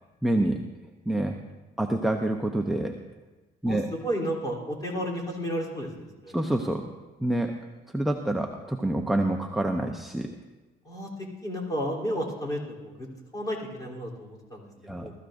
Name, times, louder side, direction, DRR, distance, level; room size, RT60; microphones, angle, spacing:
voice 1, 0.2-0.6 1.1-1.4 1.8-3.0 3.6-3.9 6.3-6.9 7.2-7.5 7.9-10.3 14.9-15.1, right 1 dB, ahead, 3 dB, 0.8 m, -27 dB
voice 2, 3.6-6.3 10.8-11.1 11.4-13.1 13.3-15.1, equal, 20° left, -2 dB, 3.4 m, -32 dB
20.5 x 13.5 x 2.6 m, 1.2 s
cardioid pair, 110°, 17 cm